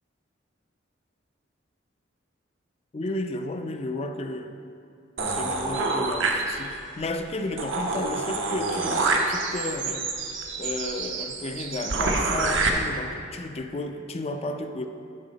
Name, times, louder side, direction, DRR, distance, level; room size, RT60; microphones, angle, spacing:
voice 1, 2.9-4.6 5.2-10.1 10.6-14.9, left 2 dB, 30° left, 7 dB, 0.4 m, -33 dB
sound 1, 5.2-6.9 7.3-7.4 7.6-12.7, right 3 dB, 80° right, 0.8 m, -27 dB
10.0 x 5.9 x 4.0 m, 2.5 s
head